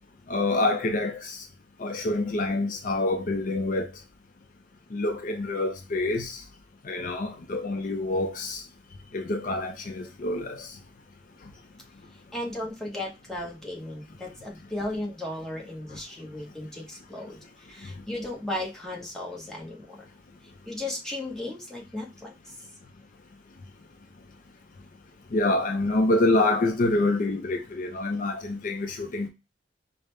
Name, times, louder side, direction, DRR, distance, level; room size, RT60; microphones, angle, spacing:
voice 1, 0.3-1.4 1.8-3.9 4.9-6.4 6.8-8.6 9.1-10.8 25.3-29.3, left 2 dB, 50° left, 0.5 m, -26 dB
voice 2, 12.3-17.4 17.7-20.1 20.7-22.3, left 1 dB, 5° left, 0.9 m, -35 dB
5.0 x 2.0 x 3.2 m
head